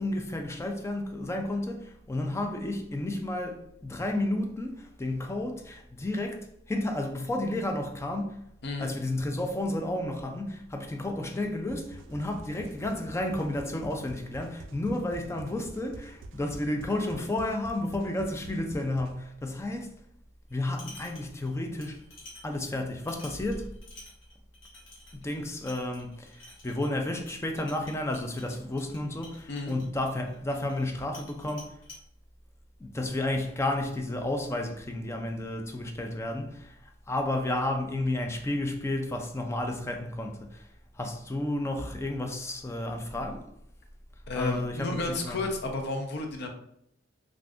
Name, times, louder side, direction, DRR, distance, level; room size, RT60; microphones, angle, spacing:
voice 1, 0.0-8.4 8.8-19.9 20.5-22.0 22.4-23.8 25.1-31.8 32.8-36.8 37.1-40.7 41.0-43.4 44.3-45.4, left 1 dB, 15° left, 0.3 m, -32 dB
sound 1, 11.7-19.1, right 2 dB, 70° right, 0.3 m, -47 dB
sound 2, 20.5-21.5 21.8-30.9 31.1-32.0, left 2 dB, 80° left, 1.2 m, -51 dB
voice 2, 44.3-46.5, left 2 dB, 60° left, 0.6 m, -32 dB
2.5 x 2.4 x 3.4 m
head